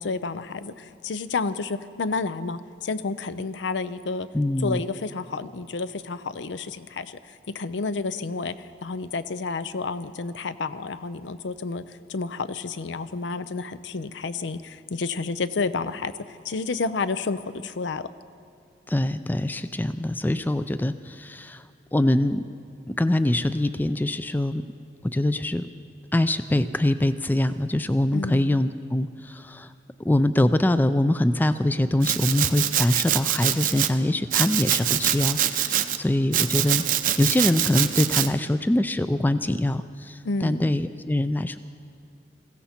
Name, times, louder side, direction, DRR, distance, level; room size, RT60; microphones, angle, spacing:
voice 1, 0.0-4.3 4.6-18.1 28.1-28.5 40.2-40.6, left 4 dB, 85° left, 13 dB, 0.6 m, -30 dB
voice 2, 4.3-4.8 18.9-21.6 21.9-22.4 22.9-24.6 25.0-25.7 26.1-29.7 30.0-36.8 37.2-41.6, left 1 dB, 10° left, 12 dB, 0.3 m, -24 dB
Domestic sounds home sounds, 32.0-33.9 34.3-36.0 36.3-38.3, right 11 dB, 45° right, 0.6 m, -24 dB
21.0 x 16.0 x 4.4 m, 2.2 s
head